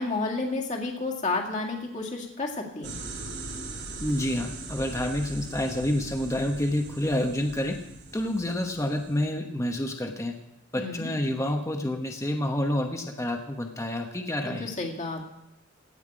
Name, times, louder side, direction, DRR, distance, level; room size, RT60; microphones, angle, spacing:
voice 1, 0.0-3.0 10.8-11.1 14.4-15.2, left 3 dB, 35° left, -1 dB, 2.0 m, -31 dB
sound 1, 2.8-9.3, right 2 dB, 55° right, 3.3 m, -40 dB
voice 2, 4.0-7.8 8.1-10.3 10.7-14.7, left 1 dB, 15° left, 4 dB, 1.0 m, -28 dB
17.0 x 5.8 x 8.8 m, 0.85 s
head